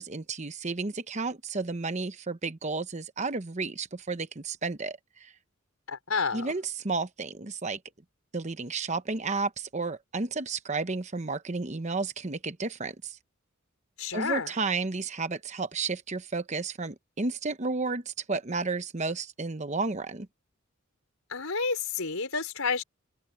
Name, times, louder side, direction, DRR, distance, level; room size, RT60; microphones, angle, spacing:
voice 1, 0.0-5.3 6.3-7.8 8.3-13.2 14.1-20.3, right 3 dB, 35° right, 0.9 m, -32 dB
voice 2, 5.9-6.5 14.0-14.5 21.3-22.8, left 5 dB, 80° left, 4.5 m, -30 dB
open air
head